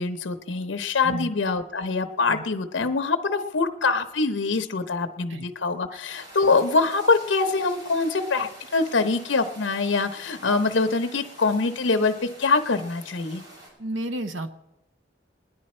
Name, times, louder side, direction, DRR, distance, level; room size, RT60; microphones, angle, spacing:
voice 1, 0.0-13.4, left 4 dB, 85° left, 8 dB, 0.7 m, -24 dB
sound 1, 6.1-13.7, right 1 dB, 65° right, 6.3 m, -47 dB
voice 2, 13.8-14.5, right 1 dB, 85° right, 10 dB, 0.8 m, -31 dB
20.5 x 10.5 x 4.3 m, 0.93 s
head